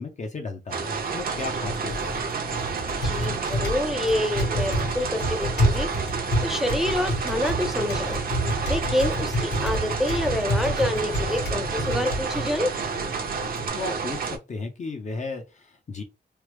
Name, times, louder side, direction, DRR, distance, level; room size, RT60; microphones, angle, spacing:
voice 1, 0.0-2.1 13.7-16.0, left 3 dB, 40° left, 0.6 m, -34 dB
sound 1, 0.7-14.4, right 5 dB, 50° right, 0.6 m, -30 dB
Typing, 1.3-13.7, equal, 60° left, 1.3 m, -29 dB
voice 2, 3.0-5.9 6.4-8.2 8.7-12.7, left 1 dB, ahead, 0.4 m, -27 dB
3.1 x 2.0 x 3.1 m
wide cardioid pair, 130°, 19 cm